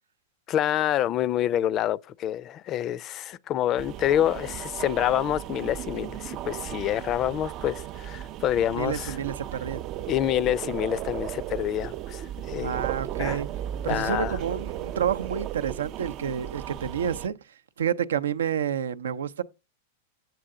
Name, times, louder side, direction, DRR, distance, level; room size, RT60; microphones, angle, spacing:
voice 1, 0.5-9.2 10.1-12.8 13.2-13.4 13.9-14.4, left 11 dB, 35° left, 0.4 m, -27 dB
sound 1, 3.8-17.3, right 12 dB, 40° right, 0.4 m, -35 dB
voice 2, 8.7-9.8 12.6-13.5 13.8-17.4 17.8-19.4, right 8 dB, 85° right, 0.6 m, -29 dB
7.9 x 7.6 x 3.7 m
hypercardioid pair, 115°, 0 cm